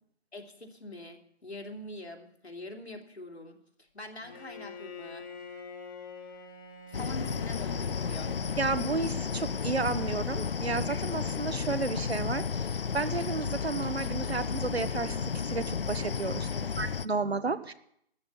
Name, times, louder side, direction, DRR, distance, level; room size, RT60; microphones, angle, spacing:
voice 1, 0.3-5.6 6.9-8.3 16.5-16.8, left 1 dB, 75° left, 3 dB, 3.0 m, -44 dB
Bowed string instrument, 4.2-9.6, left 3 dB, 20° left, 1.4 m, -46 dB
sound 1, 6.9-17.1, left 6 dB, 60° left, 0.5 m, -33 dB
voice 2, 8.6-12.6 12.9-16.5 16.8-17.7, right 4 dB, 70° right, 13 dB, 1.2 m, -32 dB
13.0 x 9.3 x 8.0 m, 0.71 s
figure-of-eight pair, 150°, 32 cm